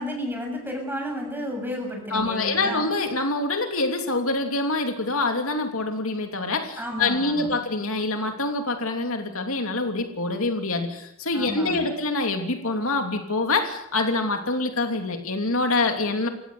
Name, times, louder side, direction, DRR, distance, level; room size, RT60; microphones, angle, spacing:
voice 1, 0.0-2.8 6.8-7.6 11.3-11.9, equal, 10° right, 3 dB, 7.2 m, -32 dB
voice 2, 2.1-16.3, left 2 dB, 65° left, 4 dB, 3.0 m, -25 dB
30.0 x 16.5 x 7.9 m, 0.79 s
head